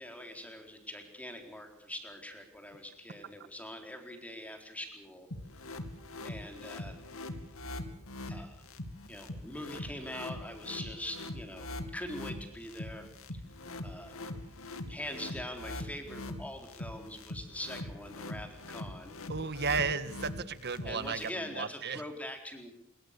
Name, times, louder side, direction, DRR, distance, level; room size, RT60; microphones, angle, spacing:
voice 1, 0.0-5.3 6.2-7.0 8.3-8.6 9.1-13.4 13.8-14.1 14.9-19.2 20.8-22.7, left 1 dB, 5° left, 5 dB, 4.2 m, -43 dB
sound 1, 5.3-21.3, left 1 dB, 70° left, 2.6 m, -42 dB
voice 2, 19.3-22.0, right 5 dB, 50° right, 13 dB, 1.6 m, -34 dB
25.0 x 23.0 x 6.9 m, 0.70 s
head